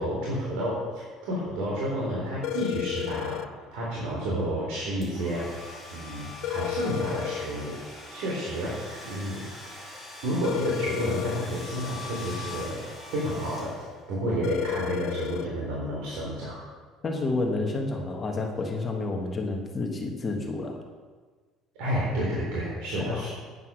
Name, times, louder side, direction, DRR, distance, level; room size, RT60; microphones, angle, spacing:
voice 1, 0.0-3.4 3.7-5.5 5.9-9.4 10.2-12.8 13.1-16.6 21.8-23.3, equal, 80° right, -5 dB, 3.7 m, -30 dB
sound 1, 2.4-3.5 6.4-7.5 10.4-11.5 14.4-15.5, left 16 dB, 60° left, 0.5 m, -32 dB
Domestic sounds home sounds, 5.0-14.2, left 3 dB, 10° right, 3.1 m, -42 dB
voice 2, 17.0-20.8 23.1-23.3, left 3 dB, 20° left, 2 dB, 1.3 m, -30 dB
10.5 x 9.5 x 6.3 m, 1.4 s
cardioid pair, 180°, 0 cm